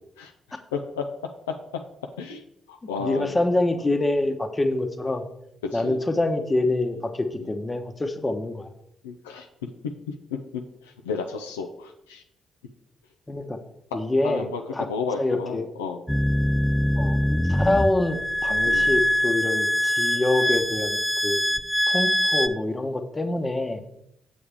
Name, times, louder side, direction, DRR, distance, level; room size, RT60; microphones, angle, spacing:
voice 1, 0.2-1.1 1.5-1.8 2.2-3.4 5.7-6.0 7.4-7.5 9.0-9.9 10.3-12.2 14.2-16.0 18.6-18.9, left 5 dB, 85° left, 4 dB, 0.4 m, -33 dB
voice 2, 3.0-5.2 5.7-8.7 13.3-13.6 13.9-14.5 14.7-14.9 15.2-15.7 17.0-17.2 17.5-21.4 21.9-23.8, left 2 dB, 25° left, 7 dB, 1.0 m, -25 dB
sound 1, 16.1-22.5, equal, 5° left, 0.5 m, -23 dB
7.0 x 6.9 x 3.4 m, 0.78 s
hypercardioid pair, 40°, 0 cm